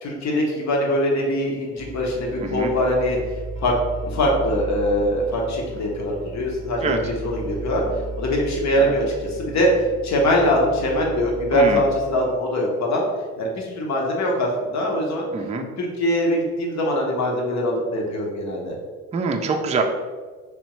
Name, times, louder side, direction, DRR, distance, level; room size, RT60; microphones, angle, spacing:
voice 1, 0.0-3.2 3.6-3.7 4.1-7.8 8.2-9.7 10.0-13.0 13.4-15.3 15.8-18.7, left 1 dB, 65° left, -1 dB, 1.0 m, -22 dB
sound 1, 1.8-12.4, right 2 dB, 25° left, 0.9 m, -35 dB
voice 2, 2.4-2.7 6.8-7.0 11.5-11.8 15.3-15.6 19.1-19.8, right 4 dB, 25° right, 4 dB, 0.4 m, -24 dB
3.5 x 3.1 x 3.0 m, 1.5 s
cardioid pair, 90°, 30 cm